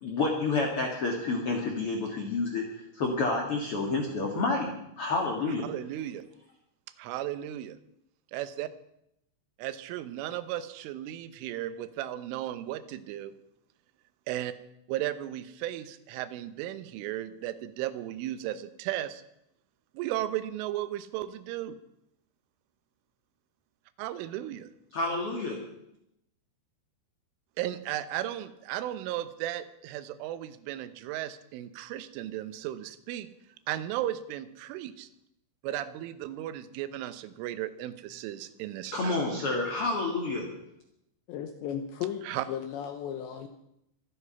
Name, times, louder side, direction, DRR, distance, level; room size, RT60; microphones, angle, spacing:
voice 1, 0.0-2.6 2.9-5.6 24.9-25.6 38.9-40.5, left 3 dB, 45° left, 0 dB, 2.0 m, -29 dB
voice 2, 5.6-6.2 7.0-7.8 8.3-8.7 9.6-13.3 14.3-14.5 14.9-19.2 19.9-21.8 24.0-24.7 27.6-33.3 33.7-35.1 35.6-39.4 42.2-42.5, right 13 dB, 85° right, 13 dB, 3.4 m, -35 dB
voice 3, 41.3-43.5, left 9 dB, 75° left, 6 dB, 3.0 m, -35 dB
25.0 x 9.9 x 5.7 m, 0.80 s
omnidirectional pair, 5.6 m